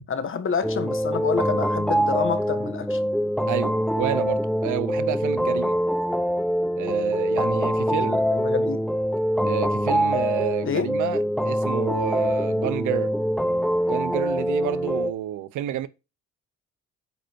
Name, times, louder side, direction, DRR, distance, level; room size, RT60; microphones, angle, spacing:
voice 1, 0.1-3.0 8.0-8.9 10.6-10.9, left 6 dB, 45° left, 1.4 m, -28 dB
sound 1, 0.6-15.1, equal, ahead, 0.7 m, -24 dB
voice 2, 3.5-5.8 6.8-8.2 9.4-13.1 13.9-15.9, right 13 dB, 80° right, 0.7 m, -30 dB
9.0 x 5.1 x 4.6 m
cardioid pair, 90°, 30 cm